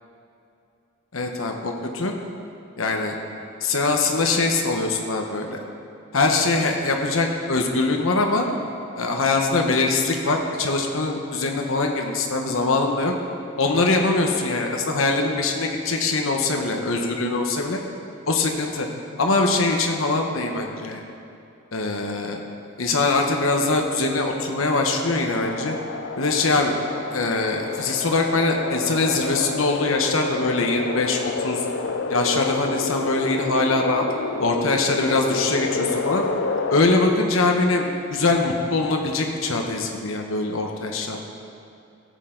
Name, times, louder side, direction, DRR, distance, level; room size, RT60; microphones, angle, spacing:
voice 1, 1.1-2.1 2.8-3.2 3.6-5.6 6.1-8.5 9.0-13.1 13.6-17.8 18.3-18.9 19.2-21.0 21.7-22.4 22.8-25.8 26.2-26.8 27.1-31.6 32.1-34.0 34.4-36.2 36.7-41.2, left 3 dB, 75° left, 2 dB, 1.1 m, -22 dB
sound 1, 23.6-36.8, left 4 dB, 60° left, 0.5 m, -30 dB
15.5 x 8.2 x 3.9 m, 2.6 s
head